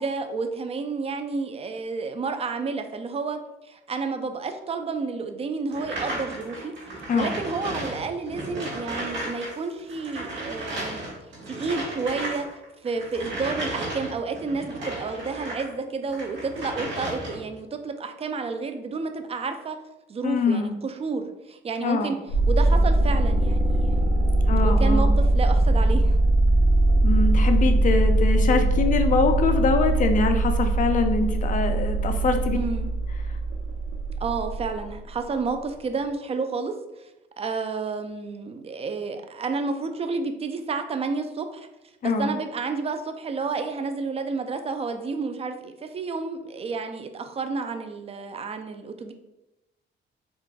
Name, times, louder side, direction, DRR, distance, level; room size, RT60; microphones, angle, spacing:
voice 1, 0.0-3.4 3.7-11.0 11.5-12.5 12.8-19.8 20.1-22.2 22.5-24.3 24.6-26.2 32.5-32.9 34.2-36.7 37.4-41.7 42.0-49.1, right 4 dB, 30° right, 7 dB, 0.4 m, -30 dB
sound 1, 5.7-9.5 9.8-15.7 16.1-17.5, right 1 dB, 70° right, 1.3 m, -34 dB
voice 2, 20.2-20.8 21.8-22.1 24.5-25.1 27.0-32.6 42.0-42.3, left 4 dB, 40° left, 7 dB, 0.4 m, -24 dB
sound 2, 22.3-35.0, right 2 dB, 90° right, 0.5 m, -21 dB
3.8 x 2.4 x 2.2 m, 0.96 s
cardioid pair, 90°, 20 cm